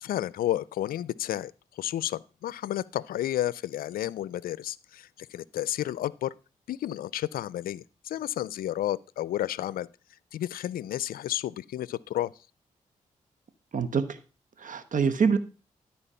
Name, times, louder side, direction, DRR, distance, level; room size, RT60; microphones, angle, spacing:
voice 1, 0.0-6.3 6.7-9.9 10.3-12.3, left 13 dB, 80° left, 0.4 m, -31 dB
voice 2, 13.7-14.2 14.6-15.4, right 6 dB, 60° right, 1.2 m, -25 dB
13.0 x 4.4 x 5.6 m
supercardioid pair, 45°, 15 cm